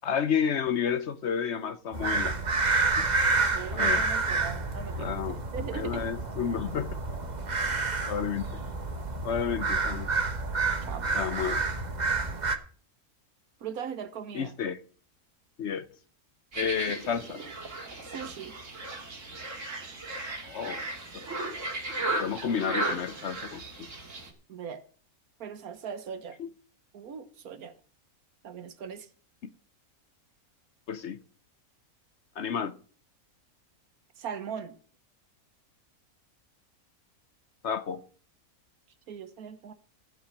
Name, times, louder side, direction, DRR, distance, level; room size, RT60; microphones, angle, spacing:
voice 1, 0.0-2.3 3.0-3.1 3.7-4.0 5.0-5.4 5.7-6.9 8.1-8.6 9.2-10.1 11.1-11.6 14.3-14.8 15.6-15.9 16.5-17.4 20.4-20.9 21.1-21.2 22.2-23.9 26.4-26.5 30.9-31.2 32.4-32.8 37.6-38.0, left 7 dB, 55° left, 0.9 m, -31 dB
sound 1, 1.9-12.6, right 3 dB, 30° right, 1.2 m, -29 dB
voice 2, 3.5-6.1 10.8-11.1 13.6-14.5 18.0-18.6 24.5-24.8 25.4-26.4 26.9-27.7 28.4-29.1 34.2-34.7 39.1-39.7, right 7 dB, 80° right, 1.6 m, -39 dB
sound 2, 16.5-24.3, right 2 dB, 55° right, 2.6 m, -35 dB
15.0 x 5.8 x 7.4 m
omnidirectional pair, 1.5 m